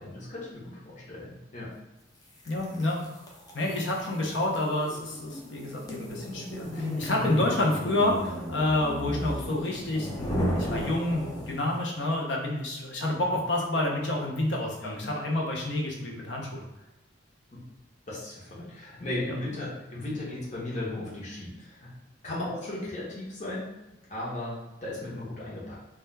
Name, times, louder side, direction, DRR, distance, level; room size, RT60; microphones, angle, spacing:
voice 1, 0.0-1.7 14.8-15.1 18.1-21.9 22.2-23.8 24.1-25.7, left 1 dB, 45° left, -6 dB, 0.8 m, -36 dB
voice 2, 2.5-3.1 3.5-16.6 19.3-19.4, left 1 dB, 70° left, -1 dB, 0.6 m, -29 dB
sound 1, 2.5-11.8, equal, 20° left, 0.4 m, -34 dB
2.3 x 2.2 x 3.1 m, 0.92 s
head